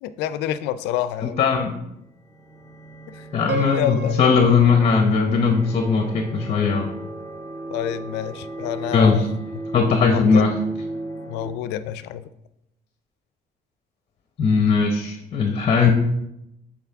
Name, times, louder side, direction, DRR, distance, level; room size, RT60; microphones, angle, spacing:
voice 1, 0.0-1.4 3.1-4.1 7.7-9.2 10.1-10.5 11.3-12.2, left 11 dB, 90° left, 13 dB, 0.4 m, -28 dB
voice 2, 1.2-1.7 3.3-6.9 8.9-9.3 9.7-10.5 14.4-15.9, left 5 dB, 40° left, 4 dB, 0.7 m, -19 dB
sound 1, 1.9-11.5, right 2 dB, 15° left, 1.7 m, -36 dB
Piano, 3.5-6.5, right 5 dB, 75° right, 0.9 m, -33 dB
8.3 x 4.1 x 3.4 m, 0.84 s
cardioid pair, 110°, 17 cm